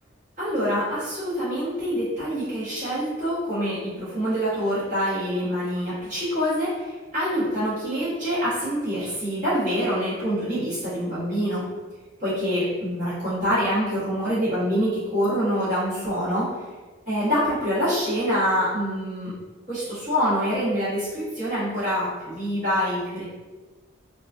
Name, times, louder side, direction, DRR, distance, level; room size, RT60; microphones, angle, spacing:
voice 1, 0.4-11.7 12.2-16.5 17.1-19.3 19.7-23.2, equal, 40° right, -14 dB, 1.3 m, -25 dB
2.8 x 2.3 x 2.5 m, 1.3 s
head